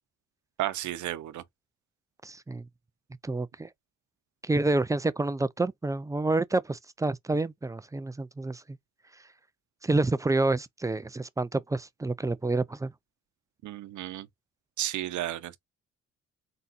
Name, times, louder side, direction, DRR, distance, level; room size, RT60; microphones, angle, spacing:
voice 1, 0.6-1.4 13.6-14.3 14.8-15.6, right 14 dB, 75° right, 0.8 m, -33 dB
voice 2, 2.2-2.6 3.2-3.7 4.4-8.6 9.8-12.9, right 2 dB, 10° right, 0.4 m, -28 dB
4.0 x 3.9 x 2.5 m
cardioid pair, 90°, 30 cm